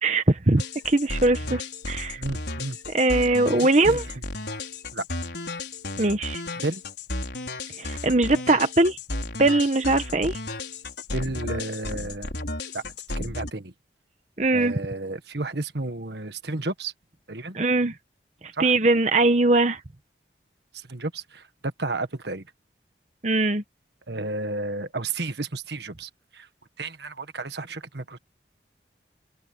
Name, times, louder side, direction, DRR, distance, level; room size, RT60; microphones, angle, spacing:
voice 1, 0.0-2.2 2.9-4.0 6.0-6.4 7.8-9.0 9.4-10.4 14.4-14.8 17.5-17.9 18.4-19.8 23.2-23.6, right 2 dB, 40° right, 1.1 m, -21 dB
sound 1, 0.6-13.5, left 2 dB, 75° left, 4.8 m, -34 dB
voice 2, 2.2-2.8 3.6-4.0 4.9-5.0 6.6-6.8 11.1-12.3 12.7-12.8 13.2-13.7 14.5-16.9 17.3-17.6 18.5-18.7 20.7-22.4 24.1-26.5 26.8-28.2, right 2 dB, 70° right, 1.6 m, -32 dB
open air
head